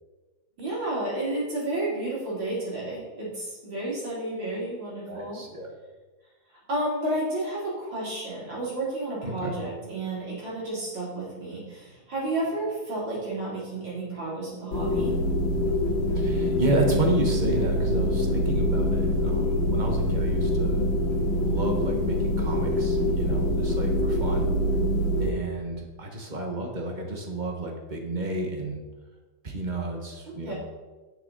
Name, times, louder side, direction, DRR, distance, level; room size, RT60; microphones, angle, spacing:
voice 1, 0.6-5.4 6.7-15.2 30.4-30.5, right 2 dB, 70° right, -7 dB, 4.1 m, -31 dB
voice 2, 5.1-5.7 9.2-9.5 16.1-20.9 21.5-24.5 25.2-28.8 29.4-30.5, right 2 dB, 25° right, 2 dB, 1.2 m, -31 dB
sound 1, 14.7-25.3, equal, 90° left, 2.1 m, -25 dB
9.5 x 7.1 x 4.1 m, 1.2 s
omnidirectional pair, 2.1 m